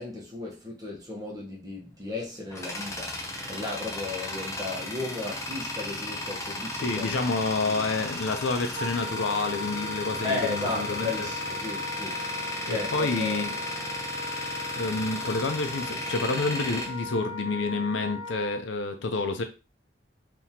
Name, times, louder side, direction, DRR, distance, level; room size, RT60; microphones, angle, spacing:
voice 1, 0.0-7.3 7.6-7.9 10.2-12.2 12.7-13.4, left 3 dB, 20° right, 1.0 m, -35 dB
Tools, 2.0-17.9, left 1 dB, 15° left, 0.5 m, -35 dB
voice 2, 6.8-11.3 12.7-13.6 14.8-19.4, left 3 dB, 90° left, 0.5 m, -29 dB
Wind instrument woodwind instrument, 8.7-18.6, left 2 dB, 40° right, 0.7 m, -37 dB
3.6 x 2.8 x 2.8 m
head